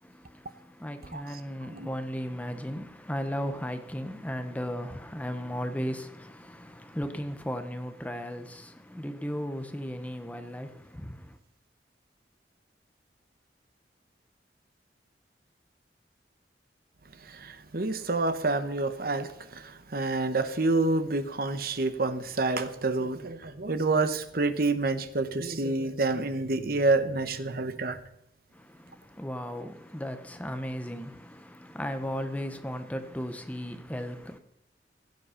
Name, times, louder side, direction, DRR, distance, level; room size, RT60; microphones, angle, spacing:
voice 1, 0.0-11.4 28.5-34.4, equal, 10° left, 1.0 m, -36 dB
voice 2, 17.3-28.0, right 3 dB, 55° right, 1.1 m, -28 dB
16.0 x 8.5 x 5.8 m
head